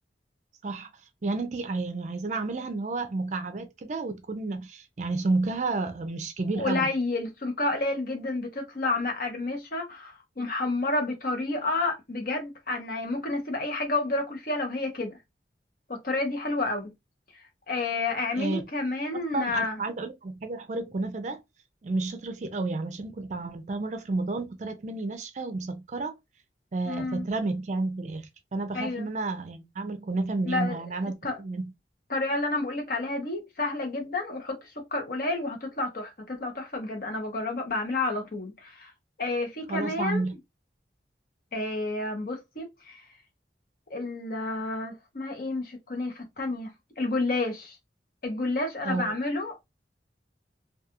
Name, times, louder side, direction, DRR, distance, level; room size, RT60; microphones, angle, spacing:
voice 1, 1.2-6.9 18.3-18.7 19.1-21.4 21.8-26.1 26.7-31.7 39.7-40.4 48.8-49.2, right 3 dB, 40° right, 0.4 m, -31 dB
voice 2, 6.6-15.1 16.0-16.9 17.7-19.8 26.9-27.2 28.7-29.1 30.4-30.8 31.2-31.4 32.1-34.6 34.9-38.9 39.2-40.2 41.5-43.0 43.9-47.8 48.2-49.7, left 2 dB, 50° left, 0.8 m, -30 dB
2.3 x 2.3 x 2.8 m
head